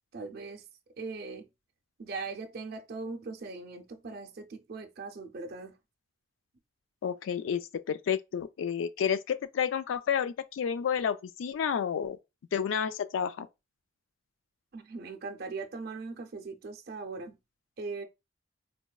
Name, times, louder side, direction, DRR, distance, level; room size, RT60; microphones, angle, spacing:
voice 1, 0.1-0.7 1.0-1.5 2.0-5.8 14.7-17.4 17.8-18.0, right 4 dB, 55° right, 0.5 m, -40 dB
voice 2, 7.0-12.2 12.5-13.5, left 7 dB, 85° left, 0.3 m, -30 dB
4.0 x 2.2 x 2.3 m
head